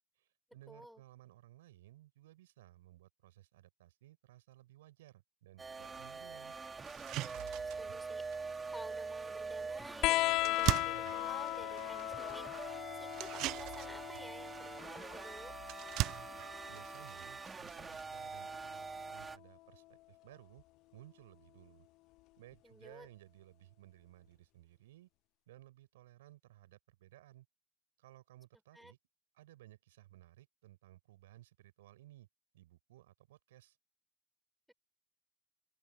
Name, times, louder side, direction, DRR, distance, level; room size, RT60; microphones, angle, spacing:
voice 1, 0.2-6.6 16.3-20.6 20.9-21.9 22.4-25.1 25.5-27.5 28.0-29.0 29.3-32.3 32.5-33.8, right 15 dB, 85° right, 6.6 m, -59 dB
voice 2, 0.7-1.0 7.3-8.3 8.7-15.5 22.6-23.1 28.7-28.9 34.7-34.8, equal, ahead, 6.1 m, -53 dB
sound 1, 5.6-19.4, right 4 dB, 20° right, 3.2 m, -45 dB
sound 2, 5.8-5.9 6.4-6.5 6.8-18.5, right 18 dB, 60° right, 0.6 m, -42 dB
sound 3, 10.0-17.1 18.5-19.3 20.6-20.7, left 19 dB, 60° left, 0.5 m, -37 dB
open air
hypercardioid pair, 85°, 0 cm